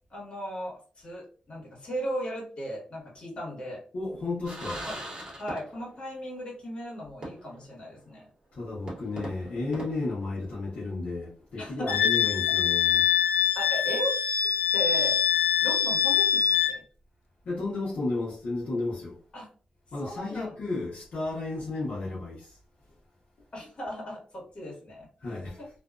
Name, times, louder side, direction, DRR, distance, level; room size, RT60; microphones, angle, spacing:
voice 1, 0.1-3.8 4.9-5.0 5.3-8.3 11.6-12.0 13.5-14.2 14.7-15.2 15.6-16.8 19.3-19.5 20.0-20.5 23.5-25.1, equal, 45° left, 1.3 m, -36 dB
voice 2, 3.9-4.9 8.5-13.1 17.4-19.2 19.9-22.6 25.2-25.7, left 2 dB, 70° left, 0.9 m, -33 dB
sound 1, 4.4-6.0 6.3-6.4 7.2-7.7 8.1-8.2 8.9-10.9, right 1 dB, 35° right, 1.0 m, -41 dB
Wind instrument woodwind instrument, 11.9-16.8, left 9 dB, 85° left, 0.3 m, -24 dB
2.5 x 2.2 x 2.4 m
wide cardioid pair, 145°, 3 cm